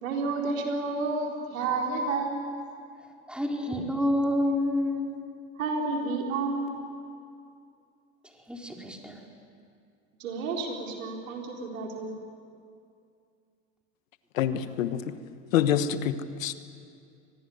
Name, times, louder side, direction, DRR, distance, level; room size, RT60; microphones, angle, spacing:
voice 1, 0.0-2.6 5.6-7.0 10.2-12.2, right 3 dB, 85° right, 1 dB, 4.2 m, -30 dB
voice 2, 3.3-5.2 8.5-9.2, left 1 dB, ahead, 1 dB, 4.3 m, -28 dB
voice 3, 14.3-15.0 15.5-16.5, left 9 dB, 85° left, 12 dB, 1.3 m, -26 dB
25.0 x 19.5 x 9.5 m, 2.4 s
hypercardioid pair, 85°, 39 cm